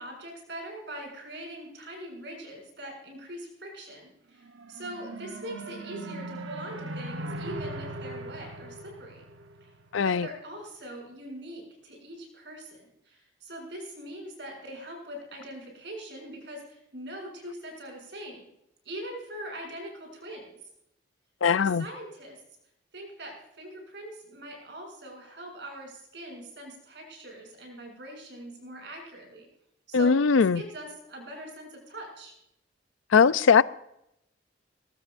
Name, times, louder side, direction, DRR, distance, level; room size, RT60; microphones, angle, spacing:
voice 1, 0.0-9.2 9.6-9.7 10.0-18.5 18.8-20.6 21.6-22.4 22.9-29.5 29.9-32.3, right 1 dB, 65° right, 7.2 m, -42 dB
sound 1, 4.4-9.9, right 2 dB, 85° right, 1.0 m, -39 dB
voice 2, 9.9-10.3 21.4-21.9 29.9-30.6 33.1-33.6, left 5 dB, 90° left, 0.5 m, -20 dB
22.0 x 19.0 x 2.6 m
head